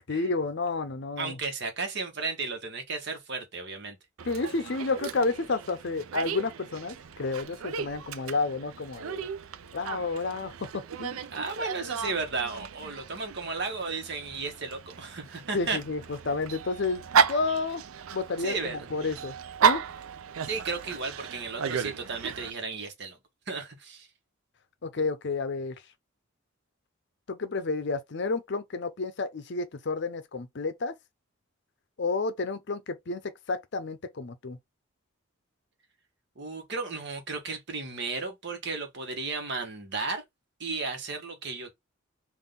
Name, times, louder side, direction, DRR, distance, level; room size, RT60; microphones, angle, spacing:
voice 1, 0.0-1.4 4.3-9.3 9.7-11.2 15.5-17.0 17.3-17.8 18.1-19.3 19.6-19.8 24.8-25.8 27.3-31.0 32.0-34.6, left 3 dB, 55° left, 0.6 m, -31 dB
voice 2, 1.2-4.0 11.3-15.8 18.4-18.9 20.4-23.2 23.5-24.1 36.4-40.2 40.6-41.7, right 4 dB, 55° right, 1.3 m, -34 dB
Dog, 4.2-22.5, right 7 dB, 85° right, 0.5 m, -33 dB
3.7 x 2.5 x 3.7 m
head